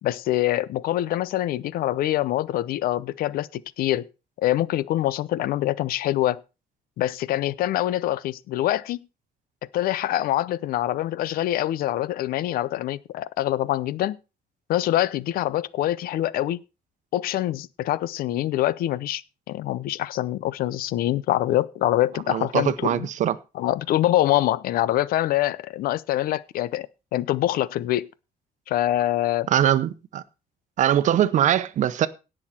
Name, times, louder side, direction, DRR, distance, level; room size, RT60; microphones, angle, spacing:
voice 1, 0.0-4.1 4.4-6.4 7.0-9.0 9.7-14.2 14.7-16.6 17.1-19.2 19.5-23.1 23.5-28.1 28.7-29.5, left 14 dB, 85° left, 0.7 m, -25 dB
voice 2, 22.3-23.3 29.5-30.2 30.8-32.1, right 11 dB, 55° right, 0.8 m, -22 dB
17.5 x 6.4 x 4.4 m
cardioid pair, 165°, 15 cm